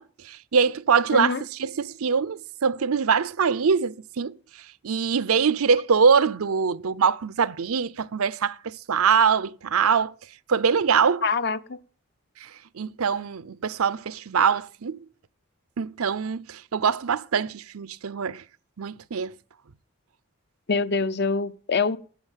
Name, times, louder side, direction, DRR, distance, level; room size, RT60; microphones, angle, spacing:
voice 1, 0.0-1.3 1.6-4.4 4.8-10.1 10.5-11.2 12.4-12.5 12.7-15.0 15.8-18.4 18.8-19.3, right 6 dB, 80° right, 0.6 m, -23 dB
voice 2, 1.1-1.4 11.2-11.8 20.7-22.0, left 4 dB, 50° left, 0.7 m, -25 dB
14.0 x 8.1 x 8.9 m
head